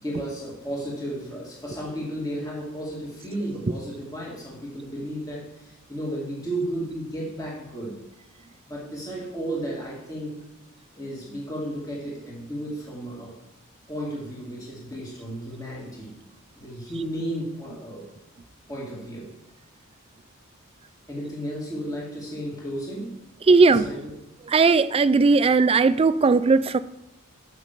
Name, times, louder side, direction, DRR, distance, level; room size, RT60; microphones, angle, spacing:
voice 1, 0.0-8.0 8.7-10.4 11.0-13.3 13.9-16.1 16.6-18.1 18.7-19.3 21.1-23.1 23.7-24.1, right 1 dB, 15° left, -5 dB, 2.4 m, -33 dB
voice 2, 23.5-23.9 24.5-26.8, right 4 dB, 25° right, 15 dB, 0.3 m, -17 dB
6.3 x 6.1 x 6.8 m, 0.96 s
head